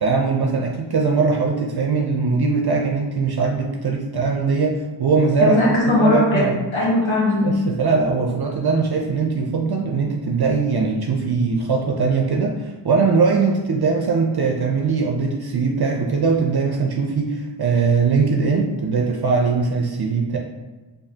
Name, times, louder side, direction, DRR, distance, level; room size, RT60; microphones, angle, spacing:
voice 1, 0.0-5.6 6.0-6.6 7.4-20.4, right 4 dB, 55° right, 1 dB, 0.5 m, -21 dB
voice 2, 5.4-7.5, left 1 dB, 80° left, -6 dB, 1.1 m, -19 dB
4.9 x 2.6 x 2.7 m, 1.2 s
wide cardioid pair, 60°, 46 cm